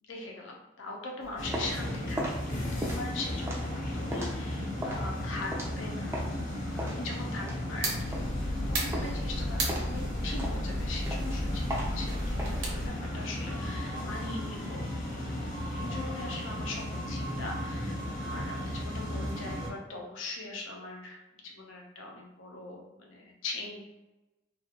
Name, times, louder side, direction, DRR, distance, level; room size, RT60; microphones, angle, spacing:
voice 1, 0.0-23.8, left 2 dB, 80° left, 0 dB, 0.6 m, -41 dB
sound 1, 1.2-6.4 6.8-8.6 8.9-9.3 9.7-12.5, right 1 dB, 15° right, 0.3 m, -38 dB
sound 2, 1.4-19.7, left 1 dB, 40° left, 0.6 m, -35 dB
sound 3, 7.8-12.9, right 1 dB, 70° right, 0.7 m, -33 dB
2.5 x 2.3 x 2.7 m, 1.0 s
head